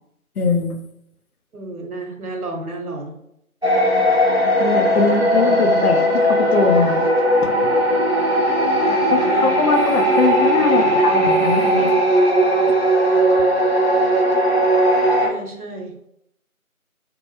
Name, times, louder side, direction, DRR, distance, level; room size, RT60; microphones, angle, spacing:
voice 1, 0.4-0.7 4.6-7.0 7.4-7.8 9.1-11.9, left 4 dB, 85° left, 5 dB, 0.6 m, -21 dB
voice 2, 1.5-3.2 8.8-9.6 10.6-11.2 11.8-12.3 15.2-15.9, right 2 dB, 85° right, 2 dB, 0.8 m, -32 dB
sound 1, 3.6-15.3, right 1 dB, 45° right, 0.5 m, -17 dB
2.2 x 2.0 x 3.0 m, 0.76 s
figure-of-eight pair, 175°, 43 cm